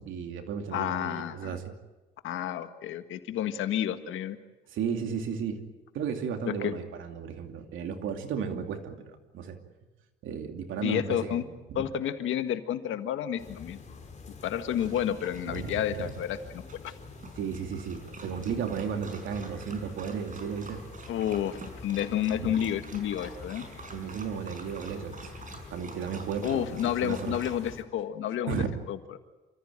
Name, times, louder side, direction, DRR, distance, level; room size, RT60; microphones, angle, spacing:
voice 1, 0.0-1.6 4.7-5.6 5.9-9.6 10.2-11.4 11.7-11.8 15.5-16.1 17.4-20.8 22.4-22.5 23.9-25.3 25.7-27.4 28.5-28.7, right 7 dB, 80° right, 5 dB, 2.7 m, -34 dB
voice 2, 0.7-1.6 2.2-4.4 6.5-6.7 10.8-11.4 11.7-13.8 14.4-16.9 21.1-23.6 26.4-29.2, left 10 dB, 80° left, 9 dB, 1.7 m, -30 dB
sound 1, 13.4-27.8, left 4 dB, 35° left, 3.9 m, -47 dB
Dog, 14.7-27.6, right 3 dB, 40° right, 5.4 m, -48 dB
28.0 x 14.5 x 8.9 m, 1.1 s
cardioid pair, 90°, 20 cm